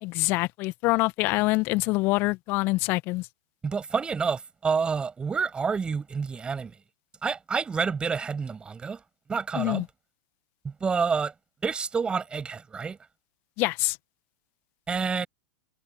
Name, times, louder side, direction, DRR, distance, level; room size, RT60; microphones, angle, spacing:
voice 1, 0.0-3.3 9.5-9.8 13.6-14.0, left 22 dB, 45° left, 1.8 m, -25 dB
voice 2, 3.6-6.7 7.2-9.0 9.3-9.8 10.6-11.3 11.6-13.0 14.9-15.3, right 5 dB, 15° right, 7.9 m, -28 dB
figure-of-eight pair, 90°, 6 cm